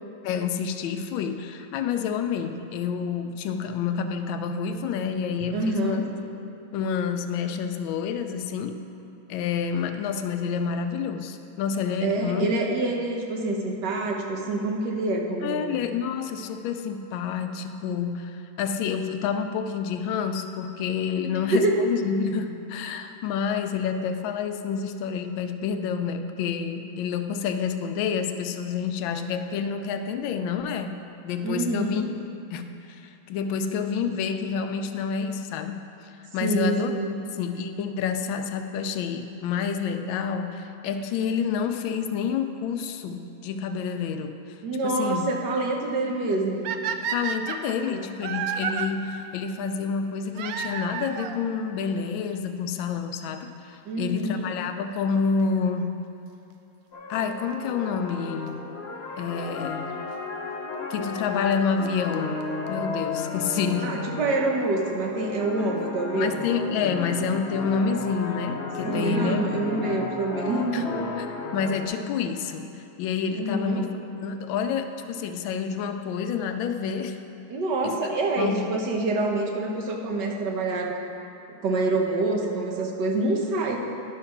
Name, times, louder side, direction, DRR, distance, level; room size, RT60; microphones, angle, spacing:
voice 1, 0.2-6.0 6.7-8.8 9.3-12.6 15.4-31.0 31.2-32.0 32.5-35.8 36.3-36.9 37.4-44.6 44.8-45.3 46.0-46.1 47.1-56.0 57.1-58.7 59.2-60.0 60.9-62.4 62.7-64.0 66.1-69.7 70.7-70.8 71.5-73.9 74.2-77.2 77.8-78.0 78.4-78.7, left 6 dB, 80° left, 7 dB, 1.4 m, -28 dB
voice 2, 5.5-6.0 12.0-15.7 21.2-21.9 31.4-32.0 36.4-37.2 44.6-46.7 47.8-48.1 53.9-54.4 63.8-66.4 68.8-70.9 73.4-73.9 77.5-81.0 81.6-83.8, right 2 dB, 65° right, 1 dB, 1.5 m, -26 dB
sound 1, 46.6-48.9 50.3-51.4 52.3-52.4 53.1-53.2 53.4-53.5 55.4-55.6 58.5-58.6 59.6-59.7 61.1-61.2 61.5-61.6 61.9-62.0 62.1-62.2 62.4-62.5 62.7-62.8 63.0-63.1, right 7 dB, 90° right, 0.7 m, -31 dB
sound 2, 56.9-71.9, left 3 dB, 45° left, 0.9 m, -34 dB
11.0 x 5.7 x 5.8 m, 2.7 s
omnidirectional pair, 2.2 m